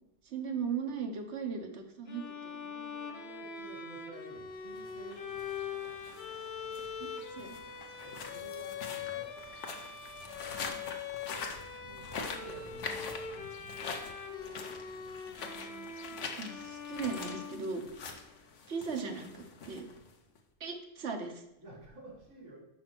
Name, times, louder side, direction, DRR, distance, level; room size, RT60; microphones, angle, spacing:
voice 1, 0.2-2.6 7.0-7.6 10.7-10.9 15.4-15.9 16.3-17.8 18.7-19.8 20.6-21.4, right 5 dB, 70° right, 4 dB, 1.3 m, -38 dB
Bowed string instrument, 2.1-18.2, left 6 dB, 60° left, 1.1 m, -43 dB
voice 2, 2.6-5.3 8.0-9.3 11.8-13.2 21.6-22.6, right 1 dB, 85° right, -2 dB, 3.0 m, -51 dB
sound 1, 4.7-20.4, left 5 dB, 85° left, 1.2 m, -44 dB
5.4 x 5.4 x 6.0 m, 0.88 s
omnidirectional pair, 1.2 m